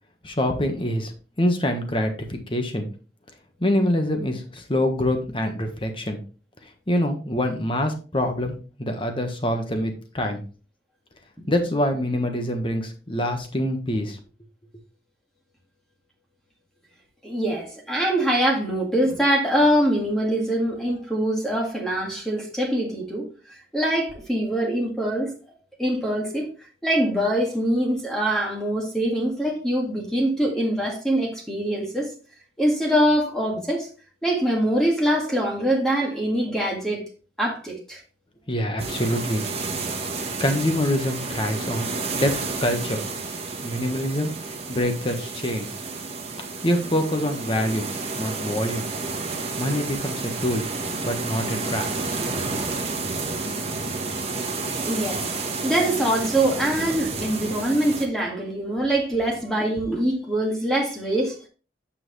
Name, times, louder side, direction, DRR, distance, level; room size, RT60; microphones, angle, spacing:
voice 1, 0.2-1.1 1.4-2.9 3.6-6.2 6.9-10.4 11.5-14.2 38.5-39.4 40.4-41.9 42.1-42.3 42.6-43.0 43.6-45.7 46.6-47.8 48.2-48.9 49.6-50.6 51.0-51.9 52.2-52.3, left 1 dB, 30° left, 1.4 m, -25 dB
voice 2, 17.2-25.3 25.8-26.5 26.8-32.1 32.6-33.9 34.2-37.0 37.4-38.0 54.3-54.5 54.8-55.3 55.6-61.5, right 1 dB, 5° left, 1.8 m, -23 dB
sound 1, 38.8-58.1, right 3 dB, 35° right, 1.5 m, -30 dB
9.1 x 5.8 x 3.2 m
head